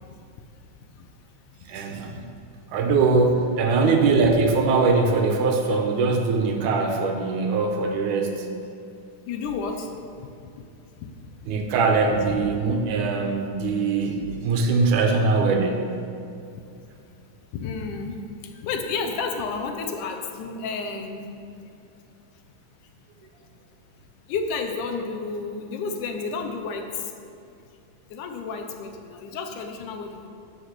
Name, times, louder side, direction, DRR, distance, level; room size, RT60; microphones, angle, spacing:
voice 1, 1.7-2.2 2.7-8.5 11.5-15.9, right 4 dB, 75° right, 4 dB, 2.2 m, -22 dB
voice 2, 9.3-9.9 10.2-10.3 11.0-11.1 16.5-16.6 17.5-18.2 18.6-21.3 24.3-27.1 28.1-30.3, left 4 dB, 75° left, 4 dB, 2.2 m, -31 dB
12.0 x 5.7 x 6.7 m, 2.6 s
omnidirectional pair, 3.8 m